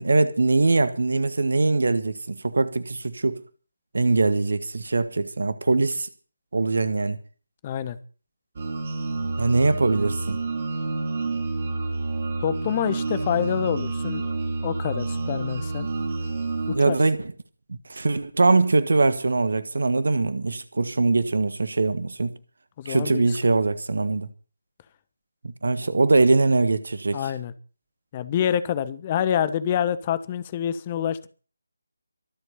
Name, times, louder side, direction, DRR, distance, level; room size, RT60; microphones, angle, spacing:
voice 1, 0.0-3.4 3.9-6.1 6.5-7.2 9.4-10.4 16.7-17.3 17.7-22.4 22.8-24.3 25.4-27.2, right 3 dB, 55° right, 1.5 m, -22 dB
voice 2, 7.6-8.0 12.4-14.2 14.6-15.9 16.7-17.0 22.8-23.2 27.1-27.5 28.1-31.3, left 9 dB, 20° left, 1.2 m, -26 dB
sound 1, 8.6-16.8, right 3 dB, 35° right, 3.0 m, -29 dB
24.0 x 8.0 x 5.7 m
figure-of-eight pair, 155°, 0 cm